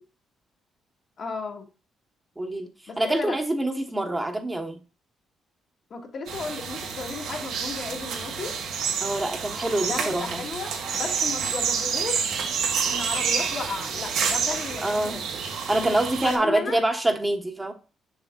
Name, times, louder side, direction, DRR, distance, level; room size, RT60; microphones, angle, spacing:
voice 1, 1.2-1.7 2.9-3.4 5.9-8.5 9.9-12.3 12.8-15.3 16.2-16.8, left 4 dB, 55° left, 2.3 m, -34 dB
voice 2, 2.4-2.7 3.0-4.8 9.0-10.4 14.8-15.2 15.7-17.7, right 1 dB, 15° right, 1.3 m, -25 dB
sound 1, 6.3-16.4, right 6 dB, 85° right, 1.9 m, -29 dB
7.3 x 6.4 x 2.4 m
cardioid pair, 90°, 0 cm